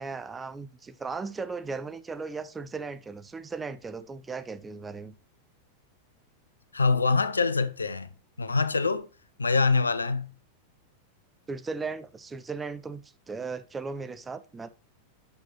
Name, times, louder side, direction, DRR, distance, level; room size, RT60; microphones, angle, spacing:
voice 1, 0.0-5.2 11.5-14.7, right 4 dB, 15° right, 0.6 m, -37 dB
voice 2, 6.7-8.1 8.4-9.1 9.4-10.3, left 4 dB, 75° left, 0.5 m, -24 dB
8.4 x 6.4 x 2.9 m
figure-of-eight pair, 90°, 0 cm